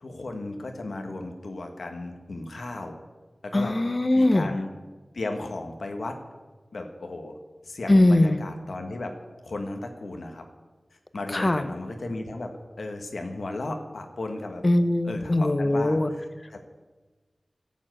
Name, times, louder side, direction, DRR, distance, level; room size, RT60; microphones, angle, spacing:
voice 1, 0.0-3.0 3.4-3.7 4.1-4.7 5.1-6.2 6.7-7.4 7.6-9.1 9.4-10.4 11.1-12.5 12.8-14.6 15.0-16.6, left 2 dB, 85° left, 4 dB, 1.4 m, -35 dB
voice 2, 3.5-4.5 7.9-8.4 11.3-11.6 14.6-16.1, left 1 dB, 35° left, 11 dB, 0.8 m, -21 dB
13.0 x 7.3 x 7.8 m, 1.3 s
wide cardioid pair, 70°, 0 cm